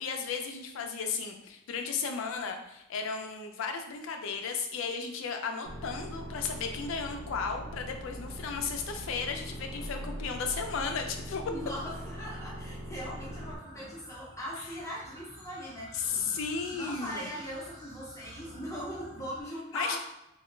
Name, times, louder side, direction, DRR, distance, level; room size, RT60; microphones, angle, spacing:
voice 1, 0.0-11.4 15.9-17.3 19.7-20.0, left 5 dB, 65° left, 4 dB, 0.3 m, -34 dB
sound 1, 5.6-13.6, equal, 70° right, 0.5 m, -41 dB
voice 2, 11.5-16.1 16.7-20.0, equal, 15° left, -6 dB, 0.5 m, -40 dB
sound 2, 13.0-19.4, right 1 dB, 20° right, 0.7 m, -50 dB
2.2 x 2.0 x 3.1 m, 0.86 s
head